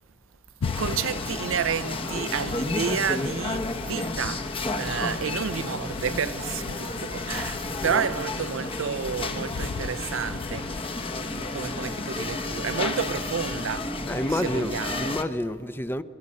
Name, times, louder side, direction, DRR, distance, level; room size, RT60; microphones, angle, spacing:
sound 1, 0.6-12.6, left 6 dB, 85° left, 0.5 m, -39 dB
sound 2, 0.6-15.2, left 2 dB, 25° left, 1.0 m, -32 dB
voice 1, 0.8-10.8 11.2-14.0 14.3-15.2, right 7 dB, 70° right, 0.5 m, -31 dB
voice 2, 14.1-16.0, left 1 dB, 10° left, 0.5 m, -29 dB
29.5 x 21.5 x 5.4 m
head